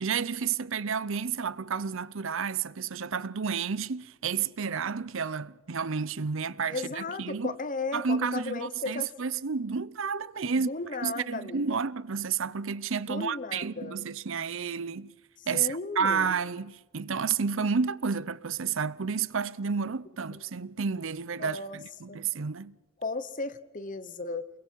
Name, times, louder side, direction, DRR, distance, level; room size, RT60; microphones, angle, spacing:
voice 1, 0.0-7.5 7.9-10.7 11.0-15.1 15.5-22.8, right 6 dB, 65° right, 0.6 m, -31 dB
voice 2, 6.7-9.1 10.6-11.8 13.1-14.0 15.5-16.3 21.4-21.8 22.1-22.2 23.0-24.5, left 3 dB, 35° left, 1.0 m, -35 dB
29.0 x 22.0 x 4.6 m
head